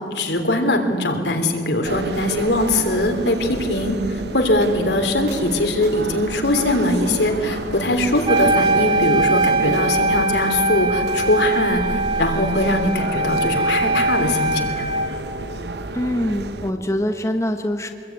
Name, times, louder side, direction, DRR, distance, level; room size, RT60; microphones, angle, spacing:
voice 1, 0.1-14.8, left 1 dB, 75° left, 4 dB, 3.3 m, -21 dB
sound 1, 1.8-16.7, right 2 dB, 70° right, 1.1 m, -31 dB
Wind instrument woodwind instrument, 8.3-15.2, right 2 dB, 25° right, 1.5 m, -21 dB
voice 2, 15.9-17.9, left 1 dB, 15° left, 5 dB, 1.2 m, -23 dB
26.0 x 21.5 x 9.5 m, 2.5 s
head